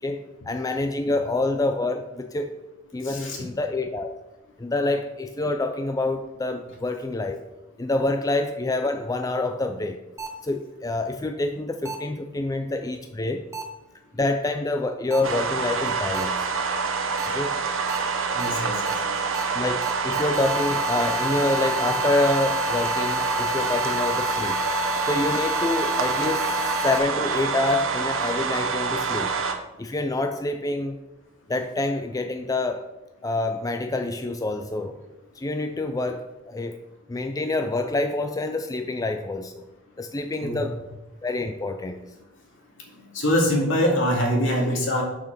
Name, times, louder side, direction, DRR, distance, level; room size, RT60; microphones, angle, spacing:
voice 1, 0.0-2.6 2.9-4.1 4.6-7.4 7.8-10.0 10.4-13.4 14.1-16.5 17.3-17.5 19.5-24.6 25.1-29.3 29.8-31.0 31.5-32.9 33.2-35.0 35.4-36.8 37.1-39.6 40.0-40.8 41.2-42.0, left 2 dB, 20° left, 6 dB, 0.5 m, -27 dB
voice 2, 3.0-3.4 18.3-19.2 40.4-40.6 43.1-45.0, equal, 70° left, -1 dB, 2.5 m, -24 dB
sound 1, 10.2-10.3 11.8-11.9 13.5-13.6 15.1-15.2 16.1-16.2 17.2-17.3 17.9-18.0 18.4-18.5 18.8-18.9 19.3-19.4 19.8-27.0, left 2 dB, 15° right, 1.1 m, -30 dB
sound 2, 15.2-29.5, right 5 dB, 80° right, 1.1 m, -26 dB
6.9 x 6.1 x 6.6 m, 1.0 s
head